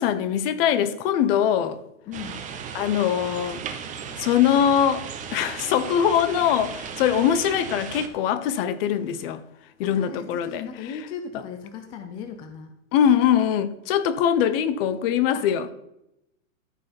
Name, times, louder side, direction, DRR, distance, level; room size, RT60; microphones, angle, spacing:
voice 1, 0.0-1.8 2.7-3.6 4.2-9.4 9.8-11.0 11.3-11.4 12.9-15.7, left 9 dB, 45° left, 0.9 m, -22 dB
voice 2, 2.1-2.4 9.8-12.7 15.3-15.7, left 6 dB, 15° left, 0.3 m, -37 dB
sound 1, 2.1-8.1, right 7 dB, 20° right, 0.8 m, -36 dB
14.0 x 5.5 x 4.2 m
hypercardioid pair, 135°, 41 cm